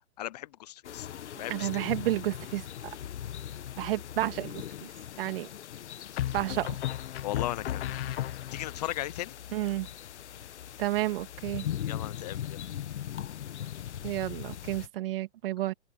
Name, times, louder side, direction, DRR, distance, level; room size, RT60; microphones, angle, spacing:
voice 1, 0.2-1.1 1.4-1.9 7.2-7.9 8.5-9.3 11.8-12.6, left 14 dB, 40° left, 0.5 m, -36 dB
sound 1, 0.8-14.9, left 10 dB, 80° left, 1.2 m, -40 dB
voice 2, 1.3-2.7 3.8-4.9 5.2-5.5 6.3-6.8 9.5-9.9 10.8-11.7 14.0-15.7, right 15 dB, 55° right, 2.3 m, -31 dB
sound 2, 3.5-4.1 6.2-8.8, left 12 dB, 60° left, 1.3 m, -35 dB
open air
hypercardioid pair, 150°, 34 cm